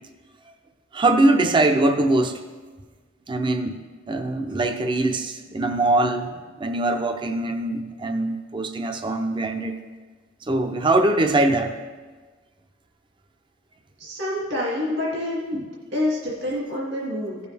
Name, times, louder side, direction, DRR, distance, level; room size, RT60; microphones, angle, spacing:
voice 1, 0.9-2.4 3.3-3.8 4.1-6.3 6.6-9.8 10.5-11.7 15.5-15.6, right 2 dB, 25° right, 6 dB, 0.5 m, -22 dB
voice 2, 14.0-15.6 15.9-17.4, left 1 dB, 65° right, -5 dB, 2.4 m, -27 dB
16.0 x 7.1 x 3.4 m, 1.4 s
head